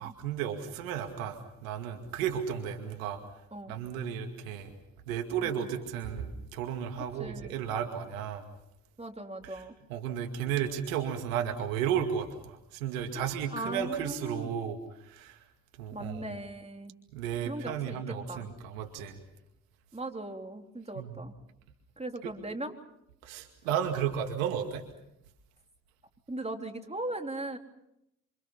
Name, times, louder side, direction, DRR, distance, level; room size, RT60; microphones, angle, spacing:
voice 1, 0.0-3.2 3.7-4.7 5.1-8.4 9.9-14.8 15.1-15.4 15.8-16.2 17.1-19.2 21.0-21.1 23.2-24.8, right 8 dB, 90° right, 5 dB, 2.3 m, -33 dB
voice 2, 7.0-7.6 9.0-9.8 13.1-14.5 15.9-16.9 17.4-18.5 19.9-21.3 22.0-22.7 26.3-27.6, right 1 dB, 15° right, 5 dB, 3.6 m, -39 dB
27.5 x 26.5 x 5.7 m, 0.80 s
hypercardioid pair, 45°, 39 cm